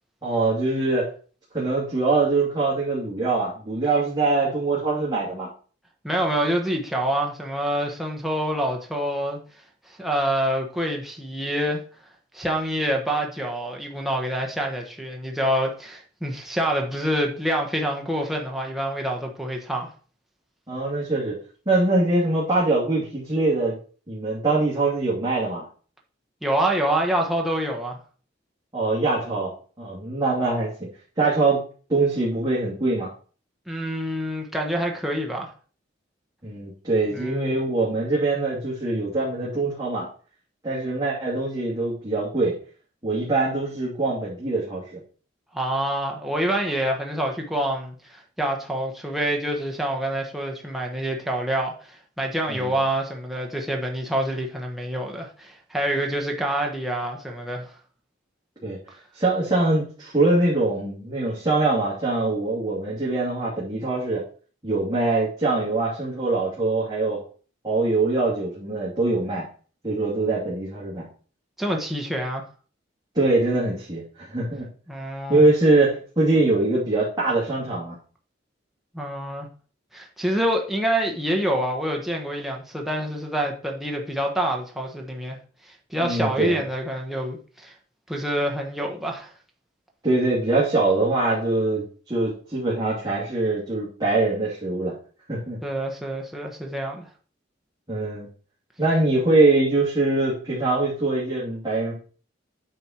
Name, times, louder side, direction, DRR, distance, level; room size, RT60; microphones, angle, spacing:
voice 1, 0.2-1.1 1.5-5.5 20.7-21.4 21.7-23.8 24.1-25.7 28.7-29.5 29.8-30.7 31.2-31.6 31.9-33.1 36.4-40.1 40.6-42.5 43.0-45.0 52.5-52.7 58.6-58.8 59.1-64.2 64.6-67.2 67.6-69.4 69.8-71.1 73.1-74.7 75.3-77.9 86.0-86.6 90.0-94.9 95.3-95.6 97.9-98.3 98.8-101.9, right 2 dB, 20° right, 2.6 m, -23 dB
voice 2, 6.0-9.4 9.9-11.8 12.3-19.9 26.4-28.0 33.7-35.5 37.1-37.6 45.5-57.7 71.6-72.4 74.9-75.5 78.9-79.5 79.9-85.4 85.7-87.7 88.1-89.3 95.6-97.1, right 1 dB, ahead, 1.1 m, -26 dB
9.2 x 4.5 x 4.4 m
head